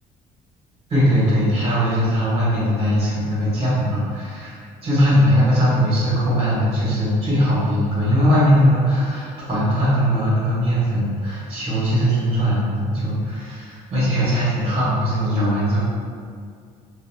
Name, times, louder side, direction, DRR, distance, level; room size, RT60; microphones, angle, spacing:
voice 1, 0.9-15.8, equal, 40° right, -9 dB, 1.2 m, -20 dB
2.9 x 2.4 x 2.2 m, 2.1 s
cardioid pair, 130°, 15 cm